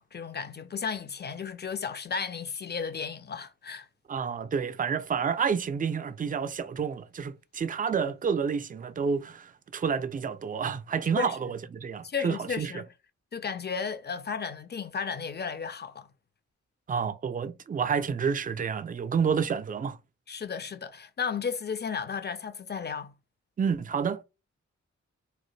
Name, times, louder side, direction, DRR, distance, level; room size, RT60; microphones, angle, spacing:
voice 1, 0.0-3.9 11.2-11.4 12.0-12.9 13.3-16.1 20.3-23.1, left 6 dB, 35° left, 0.5 m, -34 dB
voice 2, 4.1-12.8 16.9-20.0 23.6-24.2, right 6 dB, 30° right, 0.4 m, -29 dB
2.9 x 2.1 x 3.1 m
cardioid pair, 50°, 30 cm